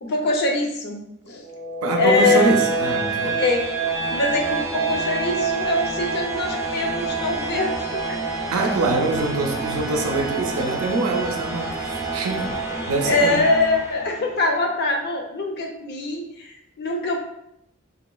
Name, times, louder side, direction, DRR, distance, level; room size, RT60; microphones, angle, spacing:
voice 1, 0.0-1.0 1.3-1.4 1.9-2.5 3.3-3.6 4.1-7.7 8.1-8.2 13.0-17.2, left 3 dB, 50° left, 0.6 m, -23 dB
sound 1, 1.4-14.4, right 3 dB, 15° right, 0.4 m, -27 dB
voice 2, 1.8-3.4 8.5-12.5 12.9-13.5, right 3 dB, 90° right, 0.5 m, -24 dB
sound 2, 7.2-12.5, right 5 dB, 80° left, 0.9 m, -40 dB
3.9 x 2.9 x 2.3 m
head